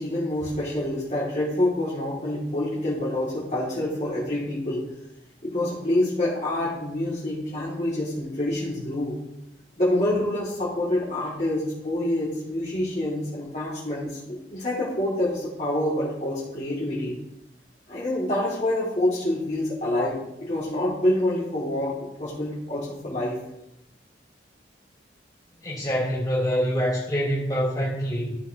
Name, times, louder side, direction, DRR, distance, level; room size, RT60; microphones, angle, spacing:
voice 1, 0.0-4.8 5.4-9.1 9.8-17.2 17.9-23.4, left 1 dB, 40° left, -9 dB, 2.4 m, -27 dB
voice 2, 25.6-28.4, equal, 20° left, -7 dB, 3.3 m, -25 dB
14.0 x 5.8 x 2.9 m, 0.86 s
head